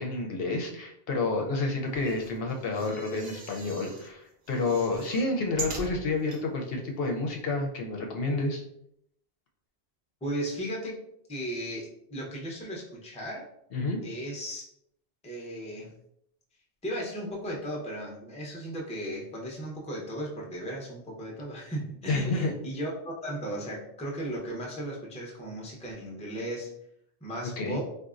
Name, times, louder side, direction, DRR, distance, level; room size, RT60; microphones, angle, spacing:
voice 1, 0.0-8.6 13.7-14.0 22.1-22.5 27.6-27.8, left 3 dB, 70° left, 1 dB, 0.7 m, -29 dB
sound 1, 1.9-4.1 4.5-6.4 7.0-7.1 7.3-7.4, right 3 dB, 55° right, 0.8 m, -41 dB
voice 2, 10.2-11.0 11.3-13.5 14.0-14.7 15.2-15.9 16.8-26.7 27.2-27.8, equal, 10° left, -2 dB, 0.5 m, -36 dB
3.9 x 2.4 x 2.4 m, 0.74 s
omnidirectional pair, 1.1 m